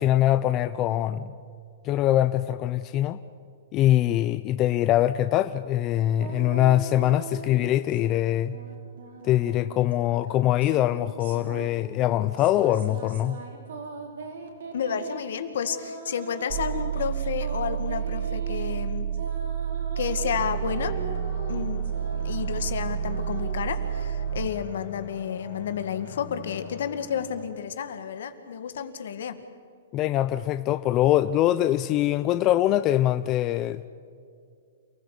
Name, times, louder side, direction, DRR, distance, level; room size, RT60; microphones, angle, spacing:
voice 1, 0.0-1.3 1.8-3.2 3.7-8.5 9.2-13.4 29.9-33.9, left 13 dB, 25° left, 0.6 m, -23 dB
sound 1, 6.2-8.3 8.5-24.2, right 4 dB, 75° right, 4.9 m, -40 dB
voice 2, 14.7-19.1 20.0-20.9 21.5-29.4, left 8 dB, 70° left, 2.1 m, -31 dB
sound 2, 16.5-24.5, right 9 dB, 40° right, 0.8 m, -30 dB
sound 3, 20.3-27.5, left 7 dB, 50° left, 5.0 m, -43 dB
28.5 x 16.0 x 8.4 m
hypercardioid pair, 155°, 0 cm